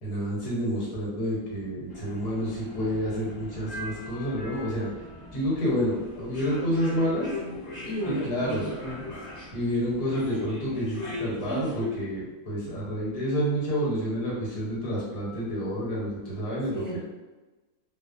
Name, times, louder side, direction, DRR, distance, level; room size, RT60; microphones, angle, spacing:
voice 1, 0.0-4.9 5.3-7.3 8.0-8.6 9.5-17.0, equal, 75° left, -6 dB, 1.5 m, -29 dB
sound 1, 1.9-11.9, left 1 dB, 40° left, 0.9 m, -39 dB
voice 2, 7.8-9.1 16.7-17.0, right 1 dB, 30° right, -11 dB, 0.9 m, -34 dB
2.8 x 2.1 x 2.4 m, 1.2 s
omnidirectional pair, 1.7 m